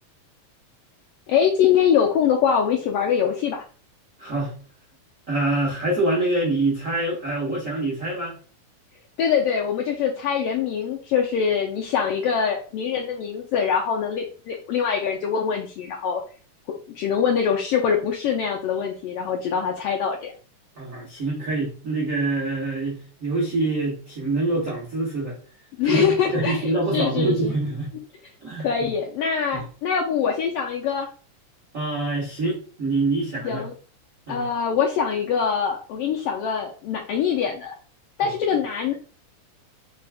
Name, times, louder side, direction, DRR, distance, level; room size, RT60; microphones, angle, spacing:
voice 1, 1.3-3.6 9.2-16.2 16.7-20.3 25.8-27.5 28.6-31.1 33.4-33.7 34.3-37.7 38.2-38.9, left 7 dB, 85° left, 1 dB, 1.3 m, -23 dB
voice 2, 4.2-4.6 5.3-8.4 20.8-25.4 25.8-27.9 28.4-28.9 31.7-33.6 34.3-34.4 38.2-38.3, right 2 dB, 75° right, -4 dB, 0.7 m, -25 dB
4.5 x 3.4 x 3.3 m, 0.40 s
omnidirectional pair, 3.3 m